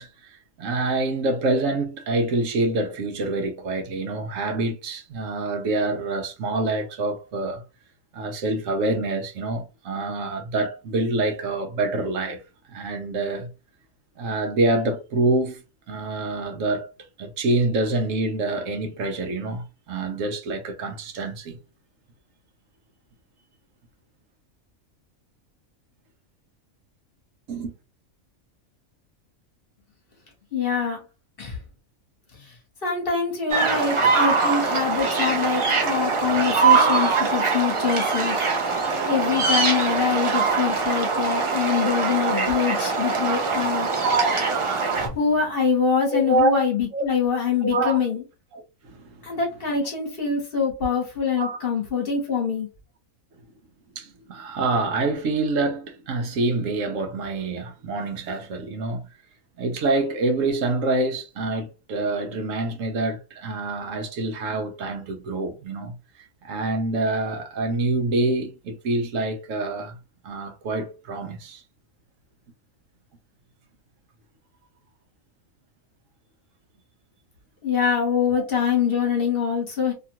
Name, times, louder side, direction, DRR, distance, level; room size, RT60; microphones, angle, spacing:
voice 1, 0.0-7.6 8.1-12.4 12.7-13.5 14.2-15.6 15.9-16.9 17.2-21.6 27.5-27.7 44.0-44.3 44.6-45.1 46.1-46.5 46.9-47.0 47.6-48.0 48.5-49.3 51.4-51.6 54.0-59.0 59.6-70.0 70.2-71.6, right 2 dB, 70° right, 1.0 m, -26 dB
voice 2, 30.5-31.0 31.4-31.6 32.4-32.5 32.8-38.4 39.1-43.9 45.0-48.2 49.2-52.7 77.6-79.9, left 6 dB, 45° left, 1.2 m, -24 dB
sound 1, 33.5-45.1, right 4 dB, 50° right, 0.3 m, -22 dB
2.8 x 2.4 x 2.8 m
omnidirectional pair, 1.4 m